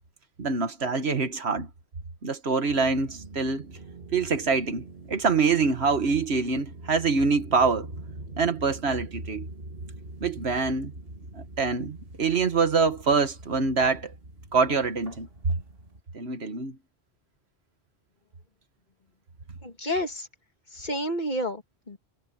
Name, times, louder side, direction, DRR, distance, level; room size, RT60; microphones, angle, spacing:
voice 1, 0.4-1.7 2.2-3.7 4.1-7.9 8.4-9.5 10.2-10.9 11.3-14.1 14.5-15.6 16.1-16.8, right 4 dB, 80° right, 1.9 m, -25 dB
sound 1, 2.7-16.0, right 2 dB, 65° right, 2.3 m, -43 dB
voice 2, 19.6-20.3 20.7-22.0, equal, 45° left, 2.4 m, -30 dB
omnidirectional pair, 1.1 m